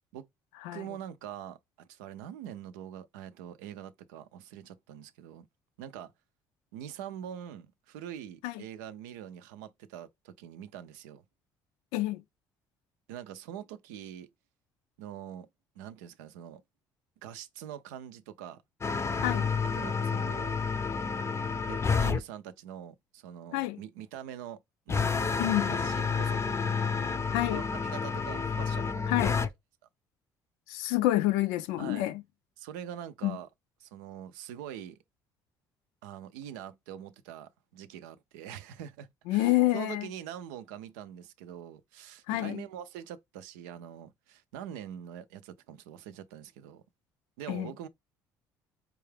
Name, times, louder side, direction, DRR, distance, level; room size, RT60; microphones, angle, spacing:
voice 1, 0.7-5.5 5.8-6.1 6.7-11.2 13.1-14.3 15.0-15.5 15.8-16.6 17.2-18.6 19.7-20.5 21.7-26.8 27.5-29.5 31.8-32.1 32.6-33.5 33.8-35.0 36.0-46.8 47.4-47.9, right 10 dB, 90° right, 0.4 m, -44 dB
sound 1, 18.8-22.2 24.9-29.5, left 5 dB, 30° left, 0.5 m, -30 dB
voice 2, 19.2-19.5 23.5-23.8 25.4-25.8 27.3-27.6 29.1-29.4 30.7-32.2 33.2-33.4 39.3-40.1 42.3-42.6 47.5-47.7, left 16 dB, 85° left, 0.4 m, -28 dB
4.4 x 2.4 x 3.3 m
supercardioid pair, 70°, 9 cm